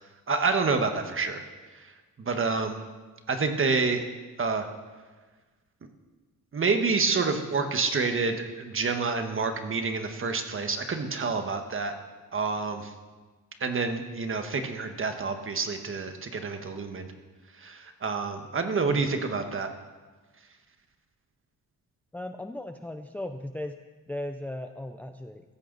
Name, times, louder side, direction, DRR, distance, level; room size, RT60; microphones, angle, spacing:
voice 1, 0.3-1.4 2.2-2.8 3.3-4.1 4.4-4.7 6.5-11.9 12.3-12.9 13.6-17.1 17.6-19.7, right 4 dB, 35° right, 6 dB, 1.4 m, -28 dB
voice 2, 22.1-23.8 24.1-25.4, left 1 dB, 5° left, 7 dB, 0.5 m, -37 dB
15.0 x 14.5 x 4.0 m, 1.3 s
cardioid pair, 135°, 36 cm